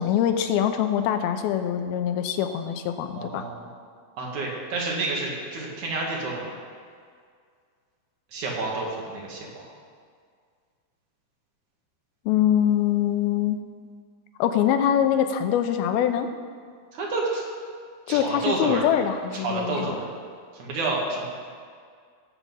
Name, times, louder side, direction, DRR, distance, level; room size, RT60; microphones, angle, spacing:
voice 1, 0.0-3.5 12.3-13.6 14.4-16.3 18.1-20.0, left 9 dB, 90° left, 8 dB, 2.6 m, -23 dB
voice 2, 3.1-3.7 4.2-6.5 8.3-9.7 16.9-17.4 18.1-18.8 19.4-20.0 20.6-21.3, right 3 dB, 60° right, -2 dB, 3.1 m, -29 dB
17.5 x 7.4 x 5.5 m, 2.1 s
omnidirectional pair, 4.3 m